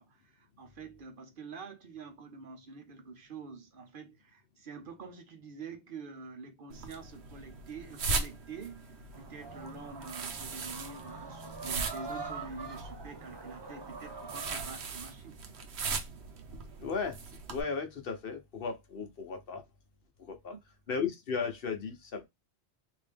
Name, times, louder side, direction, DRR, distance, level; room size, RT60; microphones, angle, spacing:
voice 1, 0.0-15.4 20.5-20.6, right 4 dB, 55° right, 0.8 m, -46 dB
sound 1, 6.7-17.6, right 4 dB, 75° right, 1.0 m, -39 dB
sound 2, 9.1-14.7, right 3 dB, 30° right, 0.5 m, -44 dB
voice 2, 16.8-17.2 17.5-19.6 20.2-20.5 20.9-22.3, left 5 dB, 60° left, 1.0 m, -35 dB
3.2 x 2.7 x 3.3 m
omnidirectional pair, 1.1 m